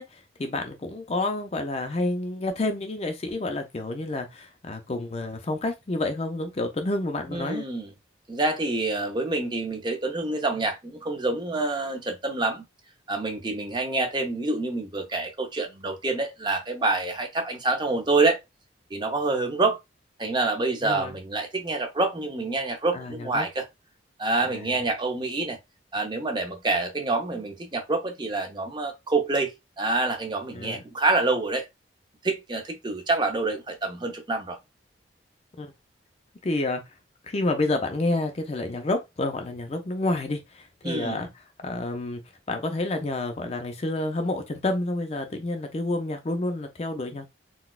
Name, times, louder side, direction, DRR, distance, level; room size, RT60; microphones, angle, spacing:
voice 1, 0.0-7.7 20.8-21.2 22.9-23.5 24.5-24.8 30.5-30.8 35.6-35.7 36.4-36.8 37.2-41.3 41.6-42.2 42.5-47.3, left 2 dB, 35° left, 0.4 m, -29 dB
voice 2, 7.3-7.9 8.3-12.6 13.1-18.4 18.9-19.8 20.2-23.7 24.2-25.6 25.9-31.6 32.2-34.6 40.8-41.3, right 3 dB, 25° right, 0.5 m, -27 dB
3.9 x 2.2 x 2.3 m
head